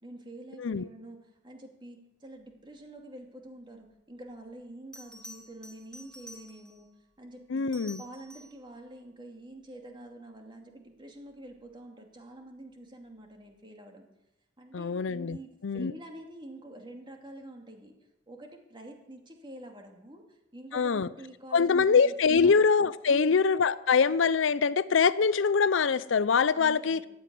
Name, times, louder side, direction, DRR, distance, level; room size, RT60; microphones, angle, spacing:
voice 1, 0.0-1.2 1.4-6.9 7.2-7.7 8.0-14.1 14.6-15.5 15.7-17.9 18.3-22.6 23.1-23.4 26.6-27.0, right 1 dB, 25° right, 2.5 m, -47 dB
Bell, 4.3-4.4 4.9-6.9 7.6-8.6 11.3-11.6, left 1 dB, 5° left, 2.7 m, -50 dB
voice 2, 7.5-8.0 14.7-15.4 15.6-15.9 20.7-21.1 21.5-27.0, left 5 dB, 75° left, 0.5 m, -24 dB
15.0 x 7.8 x 9.9 m
head